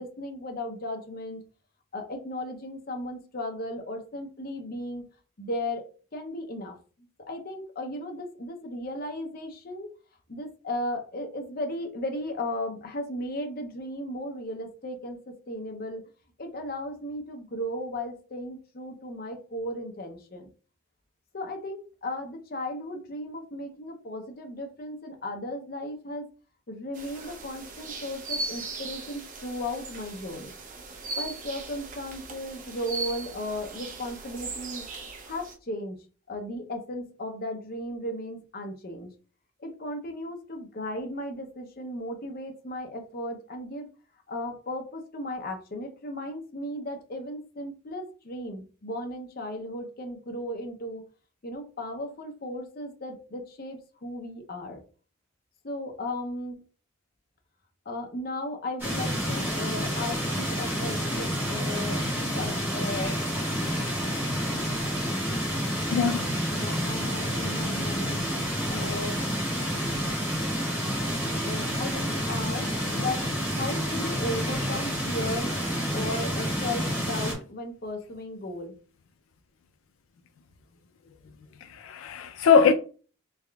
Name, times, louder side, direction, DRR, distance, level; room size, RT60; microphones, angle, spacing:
voice 1, 0.0-1.5 1.9-5.0 5.4-5.9 6.1-6.8 7.3-9.9 10.3-16.1 16.4-20.5 21.3-26.3 26.7-30.5 31.2-34.9 35.2-36.0 36.3-39.1 39.6-43.9 44.3-51.1 51.4-54.8 55.6-56.6 57.9-63.2 66.5-68.2 68.7-69.2 71.4-78.7, left 1 dB, 45° left, 0.6 m, -35 dB
sound 1, 26.9-35.5, right 3 dB, 40° right, 0.6 m, -38 dB
sound 2, 58.8-77.3, equal, 10° right, 1.5 m, -29 dB
voice 2, 65.9-66.3 81.7-82.7, left 6 dB, 85° left, 0.4 m, -22 dB
3.5 x 3.3 x 2.3 m
head